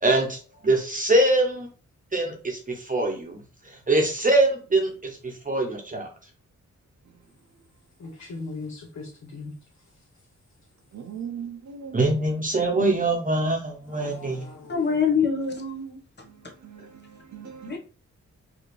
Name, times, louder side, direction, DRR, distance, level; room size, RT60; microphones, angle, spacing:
voice 1, 0.0-1.7 2.1-3.4 3.9-6.1 11.9-14.4, right 2 dB, 30° right, 0.9 m, -23 dB
voice 2, 8.0-9.5 13.9-14.9, left 3 dB, 65° left, 0.9 m, -39 dB
voice 3, 10.9-12.0 14.3-14.4 16.6-17.8, right 7 dB, 70° right, 0.7 m, -39 dB
voice 4, 14.7-16.0 17.7-17.8, left 6 dB, 35° left, 1.1 m, -24 dB
4.7 x 2.8 x 3.2 m
wide cardioid pair, 100°, 29 cm